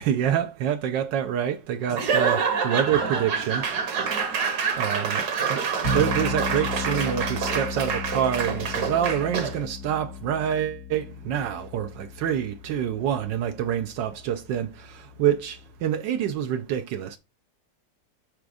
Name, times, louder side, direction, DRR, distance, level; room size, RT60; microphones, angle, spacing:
voice 1, 0.0-3.6 4.8-5.2 5.5-14.7 15.2-17.2, right 9 dB, 80° right, 1.3 m, -26 dB
Laughter / Applause / Crowd, 1.9-9.7, right 6 dB, 60° right, 1.7 m, -27 dB
sound 1, 5.8-15.9, left 3 dB, 80° left, 2.5 m, -36 dB
6.6 x 3.4 x 4.8 m
omnidirectional pair, 2.0 m